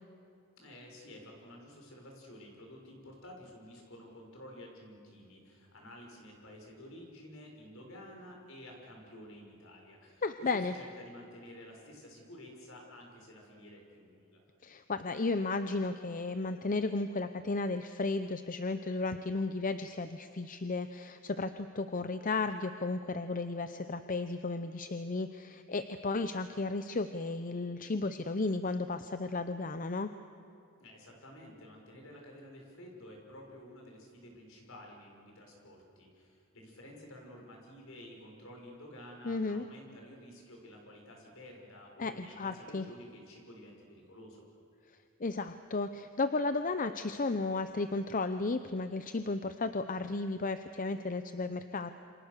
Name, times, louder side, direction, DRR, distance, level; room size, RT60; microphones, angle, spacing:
voice 1, 0.6-14.4 30.8-44.4, left 1 dB, 65° left, 1 dB, 6.0 m, -51 dB
voice 2, 10.2-10.7 14.6-30.1 39.2-39.6 42.0-42.9 45.2-51.9, left 3 dB, 40° left, 10 dB, 0.7 m, -34 dB
28.0 x 26.0 x 6.7 m, 2.7 s
head